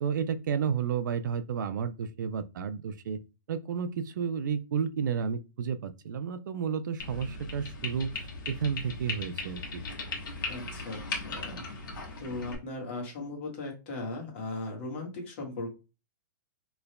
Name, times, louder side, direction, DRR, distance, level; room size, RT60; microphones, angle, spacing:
voice 1, 0.0-3.2 3.5-9.8, right 7 dB, 70° right, 0.4 m, -32 dB
sound 1, 7.0-12.6, left 3 dB, 85° left, 1.4 m, -38 dB
voice 2, 10.5-11.6 12.2-15.7, left 2 dB, 35° left, 1.5 m, -38 dB
4.4 x 3.3 x 2.2 m
hypercardioid pair, 175°, 11 cm